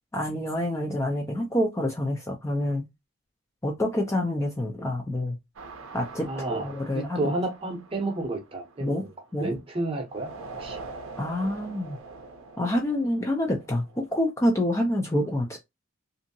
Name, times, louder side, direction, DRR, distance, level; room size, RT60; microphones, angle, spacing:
voice 1, 0.1-2.8 3.6-5.4 5.9-7.3 8.8-9.0 9.3-9.5 11.2-12.0 12.6-15.6, left 1 dB, 15° left, 0.3 m, -27 dB
sound 1, 5.6-9.6 10.1-14.2, right 3 dB, 70° right, 0.6 m, -44 dB
voice 2, 6.3-9.1 9.4-10.3 10.6-10.8, right 2 dB, 25° right, 0.7 m, -31 dB
2.7 x 2.6 x 2.6 m
head